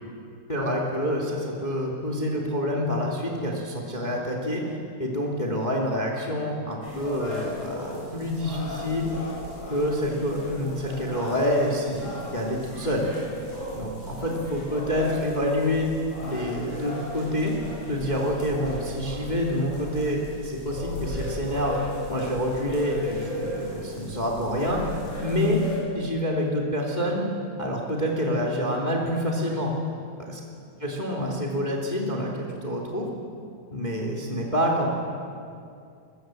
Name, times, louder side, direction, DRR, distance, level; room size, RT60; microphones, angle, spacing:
voice 1, 0.5-9.1 9.7-13.1 13.8-15.9 16.2-17.6 17.9-21.8 22.1-24.8 25.2-25.6 25.9-27.2 27.6-29.7 30.2-30.4 30.8-33.1 33.7-34.9, equal, 15° left, 0 dB, 2.5 m, -27 dB
sound 1, 6.8-25.8, left 1 dB, 60° left, 8.9 m, -36 dB
22.5 x 21.5 x 7.7 m, 2.4 s
omnidirectional pair, 3.4 m